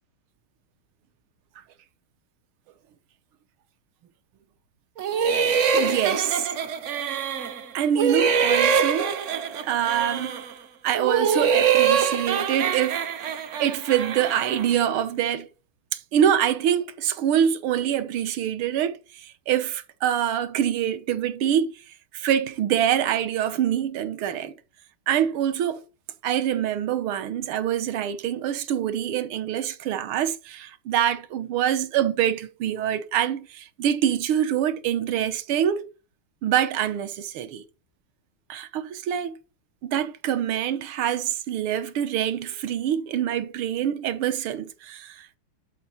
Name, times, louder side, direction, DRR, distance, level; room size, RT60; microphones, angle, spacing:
sound 1, 5.0-7.6 7.9-10.5 10.9-14.7, right 7 dB, 60° right, 0.7 m, -24 dB
voice 1, 5.7-6.5 7.7-9.2 9.6-10.4 10.8-15.5 15.9-21.8 22.1-24.5 25.1-25.8 26.2-35.9 36.4-37.6 38.5-39.4 39.8-45.4, right 10 dB, 80° right, 1.7 m, -25 dB
11.0 x 4.8 x 4.4 m
omnidirectional pair, 2.3 m